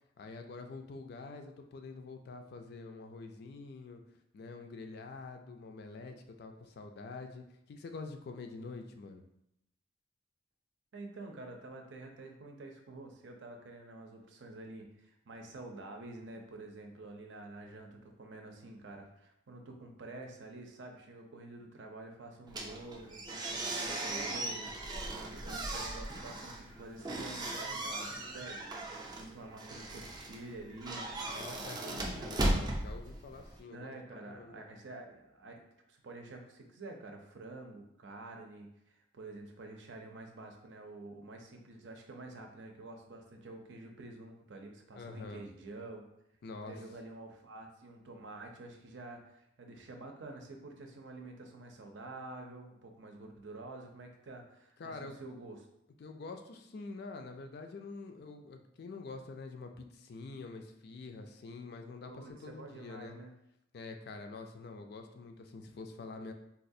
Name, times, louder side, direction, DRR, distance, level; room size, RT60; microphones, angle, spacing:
voice 1, 0.2-4.0 4.3-9.2 31.3-33.9 34.2-34.8 44.9-45.4 46.4-46.8 54.8-55.2 56.0-63.2 63.7-66.3, left 3 dB, 55° left, 5 dB, 0.3 m, -46 dB
voice 2, 10.9-32.6 33.7-35.6 35.9-46.1 46.7-55.7 62.0-63.3, right 2 dB, 70° right, 3 dB, 0.5 m, -48 dB
sound 1, 22.5-33.6, right 1 dB, 20° right, 0.4 m, -38 dB
4.1 x 2.3 x 2.6 m, 0.80 s
head